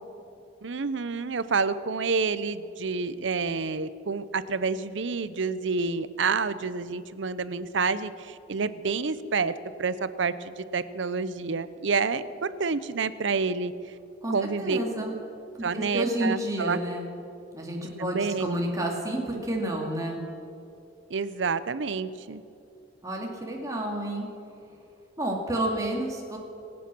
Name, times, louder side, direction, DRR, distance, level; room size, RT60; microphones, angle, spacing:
voice 1, 0.6-9.5 9.8-13.7 14.3-14.8 15.1-15.2 15.6-16.8 18.0-18.6 21.1-22.4, right 4 dB, 70° right, 14 dB, 0.7 m, -28 dB
voice 2, 14.2-15.1 15.6-17.1 17.5-20.2 23.0-24.3 25.2-26.4, right 1 dB, 15° right, -1 dB, 2.4 m, -30 dB
24.5 x 8.6 x 6.1 m, 2.8 s
head